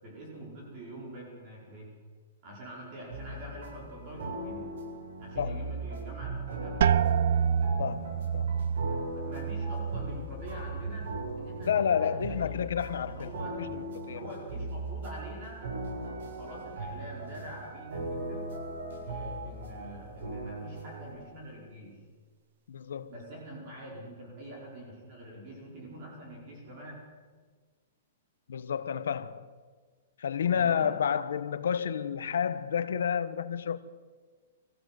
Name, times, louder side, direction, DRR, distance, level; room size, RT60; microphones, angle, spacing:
voice 1, 0.0-1.9 2.4-4.7 5.2-7.2 8.9-11.1 11.4-12.7 13.1-13.5 14.1-15.6 16.0-18.5 19.0-22.0 23.1-27.0 30.5-30.9, right 1 dB, 30° right, 5.3 m, -45 dB
sound 1, 3.1-21.1, right 2 dB, 70° right, 7.9 m, -39 dB
voice 2, 5.4-5.7 7.8-8.5 11.6-13.3 13.7-14.3 22.7-23.1 28.5-29.5 30.2-33.8, left 8 dB, 90° left, 1.3 m, -30 dB
sound 2, 6.8-12.4 12.8-13.5 14.0-14.4, right 7 dB, 55° right, 0.6 m, -30 dB
24.0 x 16.0 x 7.9 m
hypercardioid pair, 175°, 0 cm